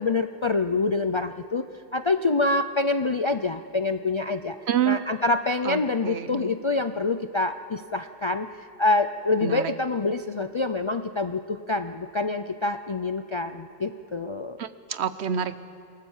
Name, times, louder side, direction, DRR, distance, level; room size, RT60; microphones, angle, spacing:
voice 1, 0.0-1.6 1.9-4.6 4.9-14.6, left 3 dB, 35° left, 8 dB, 0.6 m, -26 dB
voice 2, 4.7-5.0 5.6-6.5 9.4-9.6 14.6-15.6, right 9 dB, 90° right, 13 dB, 1.1 m, -27 dB
27.5 x 19.5 x 7.4 m, 2.5 s
omnidirectional pair, 1.1 m